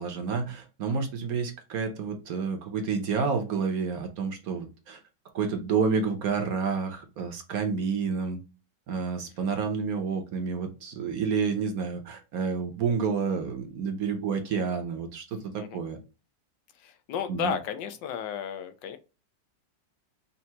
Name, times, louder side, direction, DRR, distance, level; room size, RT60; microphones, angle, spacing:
voice 1, 0.0-5.0 5.3-8.4 8.9-16.0 17.3-17.5, right 5 dB, 60° right, 6 dB, 1.2 m, -29 dB
voice 2, 16.8-19.0, left 7 dB, 85° left, 8 dB, 1.4 m, -33 dB
5.5 x 2.6 x 2.9 m, 0.29 s
omnidirectional pair, 1.9 m